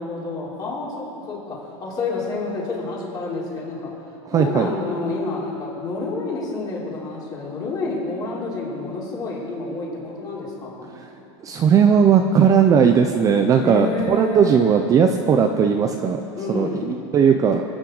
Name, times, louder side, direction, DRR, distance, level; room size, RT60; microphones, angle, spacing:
voice 1, 0.0-4.0 4.3-10.9 13.6-14.7 16.4-16.9, left 3 dB, 25° left, -5 dB, 3.4 m, -29 dB
voice 2, 4.3-4.7 11.4-16.2 16.5-17.6, right 7 dB, 20° right, 5 dB, 0.5 m, -17 dB
25.5 x 8.8 x 4.0 m, 2.7 s
supercardioid pair, 155°, 16 cm